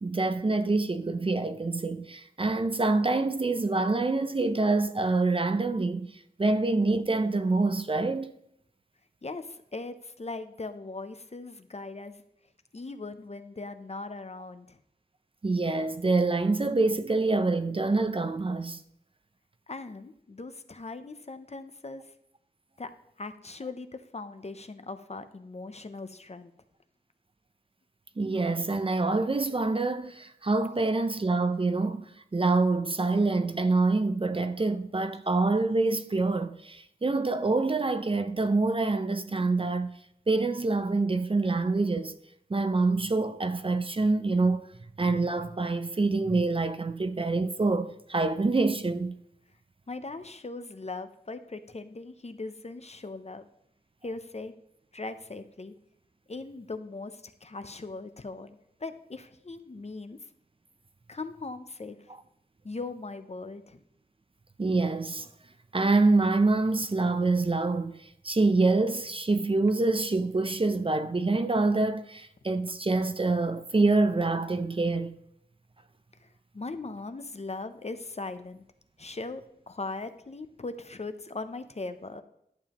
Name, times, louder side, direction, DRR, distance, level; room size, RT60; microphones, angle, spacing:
voice 1, 0.0-8.3 15.4-18.8 28.2-40.0 40.3-42.1 42.5-44.7 45.0-49.2 64.6-65.3 65.7-75.1, right 3 dB, 30° right, 0.5 m, -26 dB
voice 2, 9.2-12.2 12.7-14.8 19.7-22.0 22.8-22.9 23.2-26.5 49.9-53.4 54.0-54.5 54.9-55.7 56.3-60.2 61.1-62.0 62.6-63.8 76.2-76.3 76.5-78.6 79.0-82.2, left 3 dB, 40° left, 0.6 m, -39 dB
11.0 x 7.0 x 2.9 m
wide cardioid pair, 75°, 17 cm